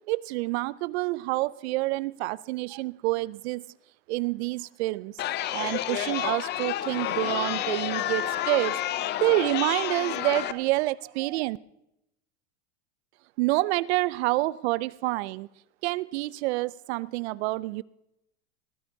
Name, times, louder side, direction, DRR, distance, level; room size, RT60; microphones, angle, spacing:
voice 1, 0.1-3.6 4.1-5.2 5.5-11.6 13.4-15.5 15.8-17.8, right 20 dB, 65° right, 20 dB, 0.5 m, -28 dB
Chatter, 5.2-10.5, left 12 dB, 30° left, 0.5 m, -30 dB
19.5 x 14.5 x 2.7 m, 0.84 s
supercardioid pair, 120°, 36 cm